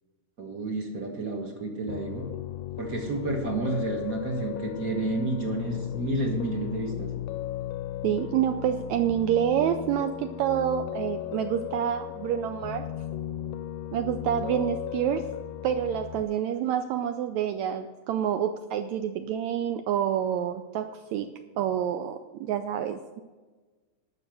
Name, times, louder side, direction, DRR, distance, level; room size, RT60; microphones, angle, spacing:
voice 1, 0.4-2.2 2.8-7.1, right 2 dB, 50° right, 1 dB, 1.0 m, -30 dB
Piano, 1.9-16.2, left 12 dB, 90° left, 2.2 m, -36 dB
voice 2, 8.0-12.9 13.9-15.3 15.6-21.3 21.6-23.2, right 9 dB, 85° right, 8 dB, 1.6 m, -28 dB
12.0 x 6.6 x 7.7 m, 1.3 s
omnidirectional pair, 3.8 m